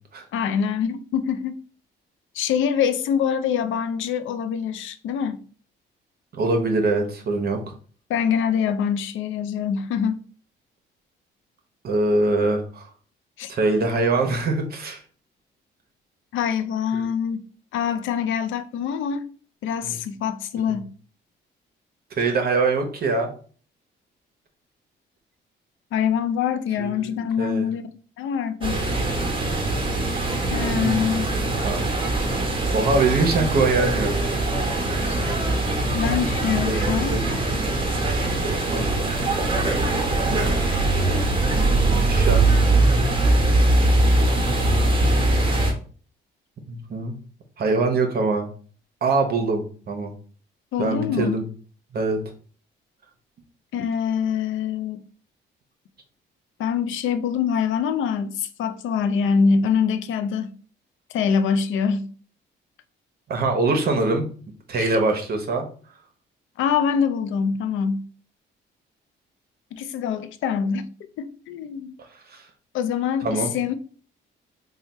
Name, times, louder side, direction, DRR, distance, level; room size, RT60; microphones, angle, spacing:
voice 1, 0.3-1.6 2.3-5.4 8.1-10.2 13.4-13.5 16.3-17.5 17.7-19.3 19.6-20.9 25.9-28.8 30.5-31.3 35.0-35.3 35.9-37.2 50.7-51.4 53.7-55.0 56.6-60.5 61.1-62.1 64.8-65.0 66.6-68.1 69.7-70.9 71.2-72.0 72.7-73.7, left 7 dB, 80° left, 0.5 m, -24 dB
voice 2, 6.3-7.6 11.8-12.9 13.5-15.0 16.9-17.0 19.8-20.0 22.2-23.3 26.8-27.7 30.7-31.0 31.6-31.9 32.7-34.1 36.6-37.7 38.7-39.2 40.2-40.7 41.5-42.4 46.7-47.1 47.6-48.5 49.0-50.1 50.8-51.4 51.9-52.2 63.3-64.3 64.7-65.7 72.3-72.5 73.2-73.5, right 3 dB, 50° right, 0.8 m, -23 dB
sound 1, 28.6-45.7, right 2 dB, 25° right, 1.0 m, -22 dB
3.2 x 2.3 x 4.1 m
cardioid pair, 90°, 20 cm